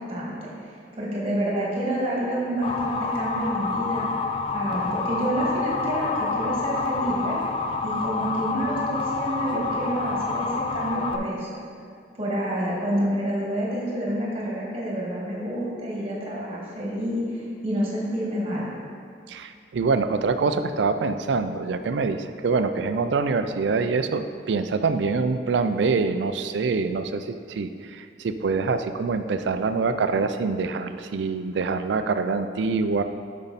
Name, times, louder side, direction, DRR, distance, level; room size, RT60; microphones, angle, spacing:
voice 1, 0.0-4.1 4.5-7.4 7.8-11.6 12.2-18.7, right 1 dB, 35° right, -4 dB, 1.7 m, -28 dB
Motor vehicle (road) / Siren, 2.6-11.2, left 4 dB, 30° left, 0.4 m, -28 dB
voice 2, 19.3-33.0, right 4 dB, 70° right, 9 dB, 0.4 m, -25 dB
7.0 x 5.5 x 4.1 m, 2.2 s
head